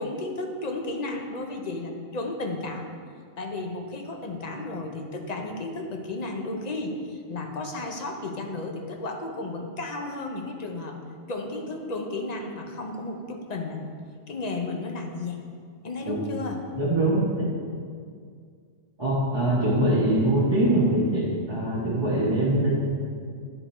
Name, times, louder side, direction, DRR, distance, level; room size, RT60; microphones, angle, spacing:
voice 1, 0.0-2.9 3.4-11.0 11.3-13.9 14.3-15.5 15.8-16.6, left 2 dB, 40° left, 2 dB, 0.7 m, -33 dB
voice 2, 16.7-17.5 19.0-22.7, right 1 dB, 20° right, -9 dB, 1.2 m, -23 dB
10.0 x 4.4 x 4.4 m, 2.1 s
omnidirectional pair, 1.2 m